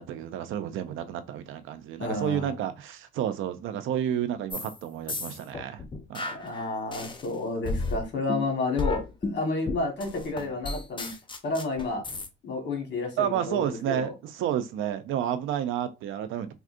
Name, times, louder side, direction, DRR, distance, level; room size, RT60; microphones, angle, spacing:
voice 1, 0.0-5.8 6.1-6.3 13.2-16.5, right 10 dB, 85° right, 0.5 m, -30 dB
voice 2, 2.0-2.5 6.3-11.1 11.4-12.0 12.4-14.1, left 3 dB, 60° left, 1.4 m, -31 dB
sound 1, 4.5-4.8 5.1-7.3 7.6-12.3, left 2 dB, 25° left, 0.5 m, -33 dB
3.6 x 2.3 x 2.5 m
cardioid pair, 90°, 20 cm